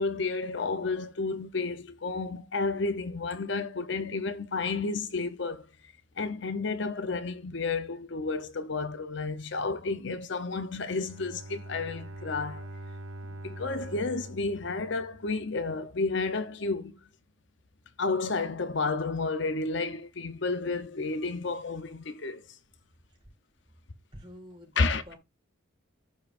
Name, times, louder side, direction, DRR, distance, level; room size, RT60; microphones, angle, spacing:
voice 1, 0.0-5.7 6.2-12.7 13.4-17.0 18.0-22.4 24.8-25.0, left 3 dB, 60° left, 0.7 m, -31 dB
Bowed string instrument, 10.9-15.7, right 1 dB, 75° right, 0.7 m, -44 dB
voice 2, 24.1-25.2, equal, 25° right, 4.6 m, -47 dB
13.5 x 5.5 x 2.5 m
head